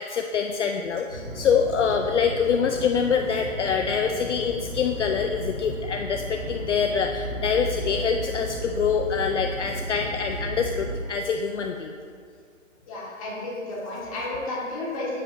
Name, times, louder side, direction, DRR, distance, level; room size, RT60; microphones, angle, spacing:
voice 1, 0.0-11.9, left 6 dB, 60° left, 4 dB, 0.5 m, -25 dB
sound 1, 1.1-11.0, equal, 10° right, 0.7 m, -34 dB
voice 2, 12.9-15.2, left 2 dB, 25° left, -6 dB, 1.6 m, -32 dB
7.6 x 6.7 x 2.6 m, 2.2 s
hypercardioid pair, 160°, 40 cm